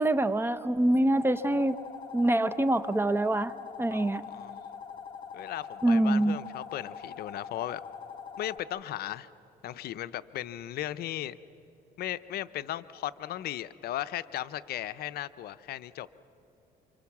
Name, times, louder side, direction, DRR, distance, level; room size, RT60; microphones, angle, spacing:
voice 1, 0.0-1.8 2.1-3.5 3.8-4.2 5.8-6.4, right 1 dB, 15° right, 14 dB, 0.7 m, -25 dB
sound 1, 1.1-8.6, left 7 dB, 25° left, 1.8 m, -43 dB
voice 2, 3.9-4.5 5.3-7.8 8.4-9.3 9.6-11.4 12.0-16.1, left 13 dB, 65° left, 14 dB, 0.6 m, -36 dB
28.5 x 25.5 x 7.2 m, 3.0 s
cardioid pair, 110°, 17 cm